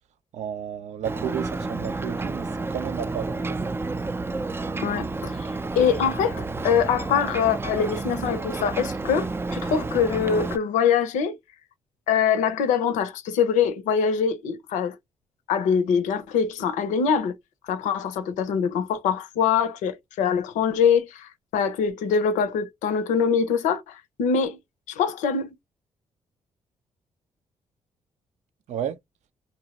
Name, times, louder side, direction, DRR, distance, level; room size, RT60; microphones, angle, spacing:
voice 1, 0.3-3.6 28.7-29.0, right 9 dB, 70° right, 0.5 m, -32 dB
Ocean, 1.0-10.6, right 3 dB, 20° right, 0.4 m, -30 dB
voice 2, 4.8-5.5 5.8-11.4 12.1-15.0 15.5-17.3 17.6-24.6 24.9-25.5, left 7 dB, 85° left, 0.6 m, -24 dB
2.6 x 2.0 x 2.8 m
supercardioid pair, 65°, 12 cm